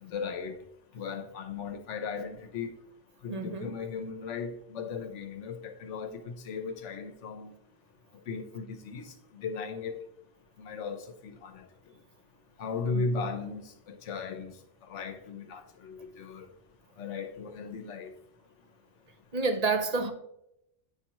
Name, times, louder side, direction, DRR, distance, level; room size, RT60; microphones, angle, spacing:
voice 1, 0.0-0.6 0.9-2.7 3.2-7.5 8.3-10.0 10.6-11.7 12.6-14.5 14.8-16.5 17.0-18.1, left 4 dB, 70° left, 1.1 m, -37 dB
voice 2, 3.3-3.7 12.9-13.0 19.3-20.1, right 4 dB, 40° right, 0.7 m, -29 dB
8.7 x 5.8 x 3.0 m
omnidirectional pair, 1.3 m